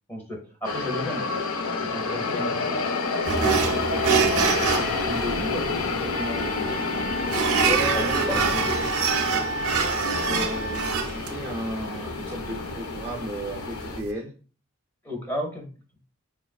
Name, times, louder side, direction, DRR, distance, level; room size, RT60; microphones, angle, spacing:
voice 1, 0.1-2.8 3.2-7.3 7.9-8.6 15.0-15.7, left 1 dB, 10° left, 1 dB, 0.7 m, -34 dB
sound 1, 0.6-14.0, left 4 dB, 75° left, 0.5 m, -29 dB
sound 2, 3.3-14.1, right 6 dB, 80° right, 0.5 m, -27 dB
Wind instrument woodwind instrument, 6.1-11.0, right 1 dB, 55° left, 1.2 m, -33 dB
voice 2, 7.6-14.3, right 2 dB, 10° right, -4 dB, 0.3 m, -35 dB
4.8 x 2.4 x 2.3 m, 0.38 s
head